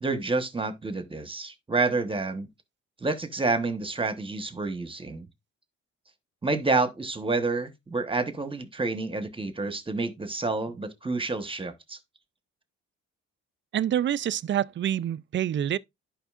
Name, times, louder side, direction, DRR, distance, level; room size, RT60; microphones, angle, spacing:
voice 1, 0.0-2.5 3.0-5.3 6.4-12.0, right 3 dB, 15° right, 1.1 m, -29 dB
voice 2, 13.7-15.8, right 10 dB, 40° right, 0.4 m, -27 dB
11.0 x 5.1 x 2.4 m
cardioid pair, 90°, 30 cm